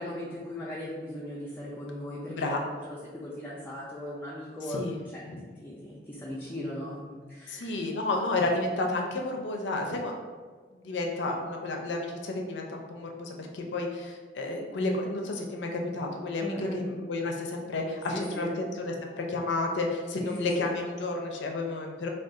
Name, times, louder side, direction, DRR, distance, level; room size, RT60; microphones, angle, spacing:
voice 1, 0.0-4.8 5.1-5.3 5.6-7.8 16.4-16.8 18.1-18.6 20.2-20.3 20.6-20.8, left 1 dB, 10° left, -7 dB, 0.4 m, -38 dB
voice 2, 2.3-2.6 4.7-4.9 5.3-5.4 7.5-10.3 10.7-22.1, left 2 dB, 80° left, 2 dB, 0.5 m, -31 dB
2.4 x 2.3 x 3.7 m, 1.5 s
head